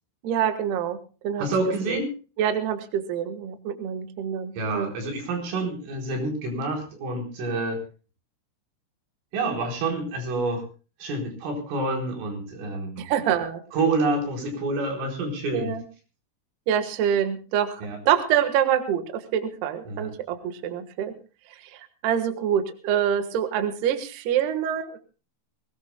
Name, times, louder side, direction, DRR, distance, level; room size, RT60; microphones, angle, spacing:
voice 1, 0.2-1.0 1.2-1.5 1.9-2.0 2.4-4.9 13.0-13.6 15.5-15.8 16.7-21.1 21.6-25.0, right 9 dB, 65° right, 7 dB, 3.1 m, -26 dB
voice 2, 1.4-2.1 4.6-7.8 9.3-10.6 11.0-13.0 13.7-15.8 17.8-18.0 19.9-20.1, right 2 dB, 85° right, 1 dB, 7.0 m, -28 dB
23.5 x 18.5 x 2.2 m, 0.34 s
omnidirectional pair, 5.6 m